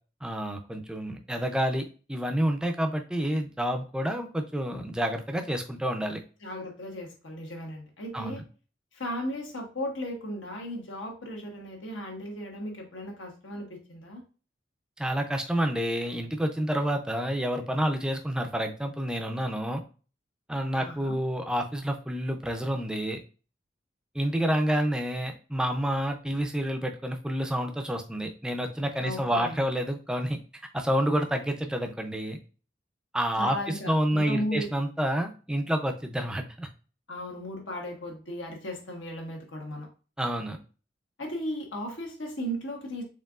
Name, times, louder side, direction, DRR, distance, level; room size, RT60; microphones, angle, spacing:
voice 1, 0.2-6.2 8.1-8.4 15.0-19.8 20.5-23.2 24.1-30.4 30.7-32.4 33.1-36.7 40.2-40.6, equal, 5° right, 4 dB, 0.4 m, -29 dB
voice 2, 6.4-8.4 8.9-14.2 20.7-21.2 29.0-29.6 33.4-34.7 37.1-39.9 41.2-43.0, equal, 80° left, 1 dB, 1.3 m, -36 dB
4.5 x 3.5 x 2.4 m, 0.36 s
head